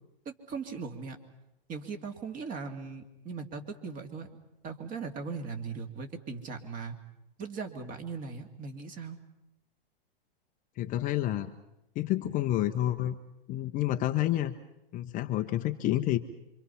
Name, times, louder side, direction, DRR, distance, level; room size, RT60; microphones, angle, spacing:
voice 1, 0.2-1.2 1.7-4.3 4.6-7.0 7.4-9.2, right 5 dB, 25° right, 5 dB, 2.5 m, -39 dB
voice 2, 10.8-11.5 12.0-13.2 13.5-14.6 14.9-16.2, left 13 dB, 25° left, 6 dB, 0.8 m, -29 dB
27.0 x 25.0 x 5.8 m, 0.89 s
hypercardioid pair, 125°, 30 cm